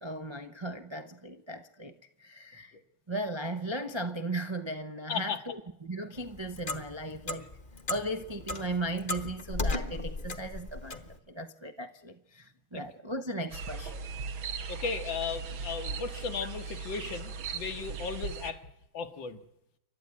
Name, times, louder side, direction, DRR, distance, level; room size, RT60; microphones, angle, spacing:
voice 1, 0.0-1.9 2.2-2.7 3.1-7.5 7.9-14.0, right 1 dB, 35° right, 0.4 m, -37 dB
Clock, 6.1-11.1, left 3 dB, 30° left, 1.2 m, -36 dB
sound 1, 13.5-18.5, right 5 dB, 85° right, 2.1 m, -38 dB
voice 2, 14.7-18.6 18.9-19.4, left 5 dB, 75° left, 2.1 m, -35 dB
28.5 x 12.0 x 9.6 m
omnidirectional pair, 2.1 m